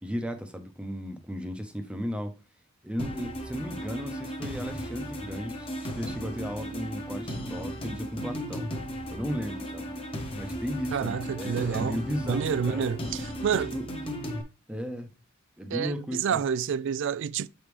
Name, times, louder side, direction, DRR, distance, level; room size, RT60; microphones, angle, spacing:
voice 1, 0.0-2.3 2.8-5.7 5.9-8.7 9.1-9.9 10.3-12.8 13.7-13.9 14.7-15.1 15.6-16.4, equal, 5° right, 0.8 m, -35 dB
sound 1, 3.0-14.4, equal, 25° left, 1.1 m, -36 dB
voice 2, 10.9-12.0 12.2-13.8 15.7-17.5, right 7 dB, 55° right, 0.3 m, -29 dB
7.2 x 5.2 x 3.2 m
head